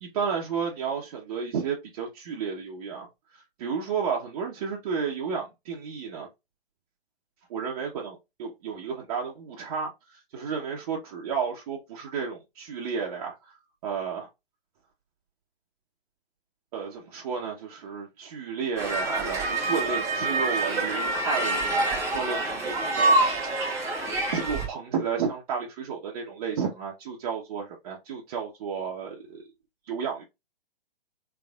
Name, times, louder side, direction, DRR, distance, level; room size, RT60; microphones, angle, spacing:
voice 1, 0.0-6.3 7.5-14.3 16.7-23.5 24.3-29.5 29.8-30.2, right 6 dB, 40° right, 0.9 m, -32 dB
sound 1, 18.8-24.7, right 2 dB, 10° right, 0.9 m, -26 dB
3.5 x 3.4 x 2.3 m
figure-of-eight pair, 120°, 30 cm